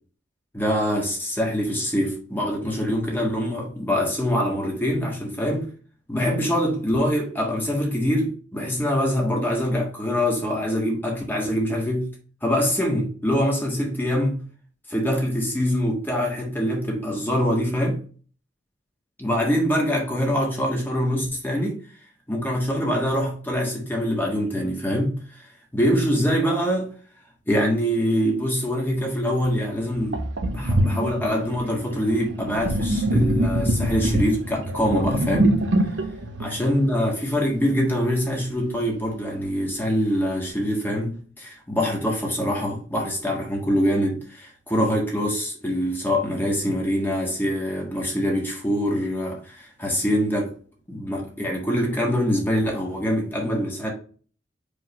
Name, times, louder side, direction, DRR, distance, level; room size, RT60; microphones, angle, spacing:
voice 1, 0.5-5.7 6.1-12.1 12.4-14.4 14.9-18.0 19.2-21.8 22.3-25.5 25.7-26.9 27.5-35.6 36.4-50.5 50.9-53.9, equal, 10° left, 1.5 m, -24 dB
Sink (filling or washing), 29.4-29.5 30.1-37.4, right 1 dB, 75° right, 0.9 m, -24 dB
5.1 x 3.8 x 5.1 m
head